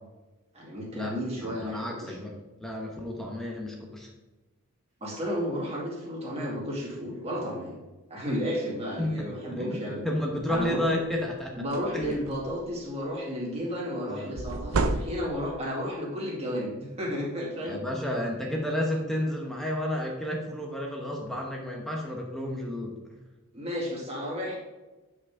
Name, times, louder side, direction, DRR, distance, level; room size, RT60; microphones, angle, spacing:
voice 1, 0.5-2.1 5.0-7.8 8.1-10.1 10.5-10.9 11.6-17.8 23.5-24.6, equal, 30° right, -4 dB, 2.4 m, -32 dB
voice 2, 1.4-2.3 2.6-4.1 9.0-9.1 9.5-9.8 10.0-11.5 11.9-12.2 14.1-14.3 17.6-22.9, left 1 dB, ahead, -1 dB, 1.0 m, -31 dB
sound 1, 10.4-10.7 11.2-11.3 11.6-12.7 14.4-15.6, right 3 dB, 75° right, 0.6 m, -31 dB
8.9 x 5.3 x 3.7 m, 1.1 s
head